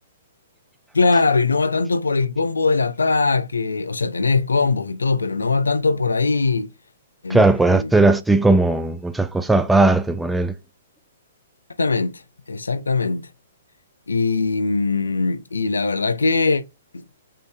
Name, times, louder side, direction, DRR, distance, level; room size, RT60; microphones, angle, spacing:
voice 1, 0.9-6.7 7.2-7.9 11.8-12.1 12.5-13.3 14.1-16.6 16.9-17.0, left 4 dB, 85° left, 0.4 m, -21 dB
voice 2, 7.3-10.5, right 2 dB, 5° right, 0.3 m, -17 dB
3.7 x 2.5 x 3.3 m
hypercardioid pair, 125°, 0 cm